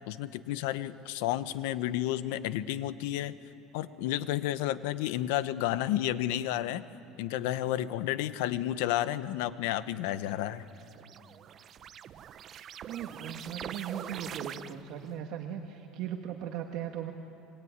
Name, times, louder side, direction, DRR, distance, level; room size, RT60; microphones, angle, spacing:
voice 1, 0.1-3.3 3.7-6.8 7.2-10.6, left 13 dB, 85° left, 13 dB, 1.0 m, -31 dB
sound 1, 10.1-15.1, right 9 dB, 30° right, 0.7 m, -44 dB
voice 2, 12.9-17.1, right 9 dB, 50° right, 3 dB, 1.6 m, -38 dB
26.5 x 22.5 x 9.6 m, 2.7 s
cardioid pair, 165°, 0 cm